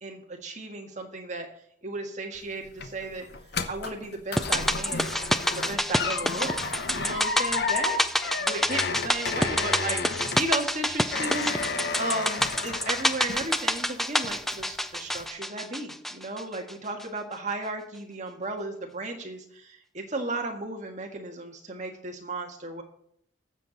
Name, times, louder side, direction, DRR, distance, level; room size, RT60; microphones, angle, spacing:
voice 1, 0.0-1.5 1.8-3.3 3.7-5.1 5.5-6.6 6.9-22.8, right 2 dB, 40° right, 2 dB, 1.6 m, -35 dB
sound 1, 2.4-13.9 14.2-14.8 15.2-15.3, left 4 dB, 55° left, 0.8 m, -32 dB
sound 2, 4.4-16.7 17.0-17.1, equal, ahead, 0.3 m, -28 dB
18.0 x 7.5 x 4.0 m, 0.69 s
head